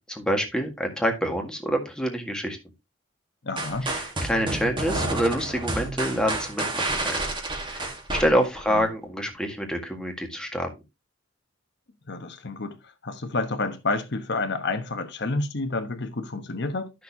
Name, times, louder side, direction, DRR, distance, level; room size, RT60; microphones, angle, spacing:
voice 1, 0.1-2.6 3.8-7.2 7.6-10.7, equal, 5° left, 1.8 m, -27 dB
voice 2, 3.4-3.9 8.7-8.9 12.1-16.9, left 3 dB, 60° left, 1.2 m, -29 dB
sound 1, 3.6-8.8, right 2 dB, 25° right, 1.7 m, -30 dB
12.0 x 6.4 x 2.8 m
head